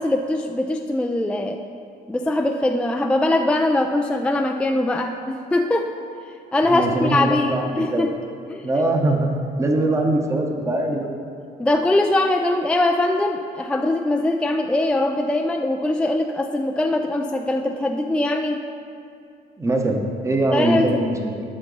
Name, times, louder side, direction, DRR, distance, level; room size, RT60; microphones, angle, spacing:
voice 1, 0.0-1.6 2.1-5.9 6.5-8.1 8.5-8.6 11.6-18.6 20.5-20.9, left 2 dB, 5° left, 3 dB, 0.3 m, -22 dB
voice 2, 6.7-8.1 8.6-9.3 9.6-11.1 19.6-21.3, right 2 dB, 15° right, 2 dB, 0.9 m, -22 dB
9.7 x 5.8 x 3.9 m, 2.5 s
cardioid pair, 110°, 17 cm